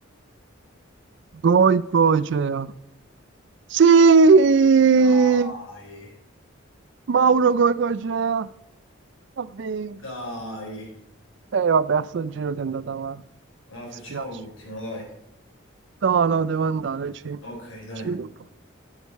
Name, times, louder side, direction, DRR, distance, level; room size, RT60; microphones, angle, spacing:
voice 1, 1.4-2.7 3.7-5.5 7.1-8.5 9.4-10.0 11.5-13.2 14.1-14.2 16.0-17.4 18.0-18.5, right 5 dB, 60° right, 0.4 m, -19 dB
voice 2, 5.0-6.2 10.0-10.9 13.7-15.1 17.4-18.1, left 1 dB, 75° left, 4.1 m, -36 dB
10.5 x 6.6 x 4.1 m
head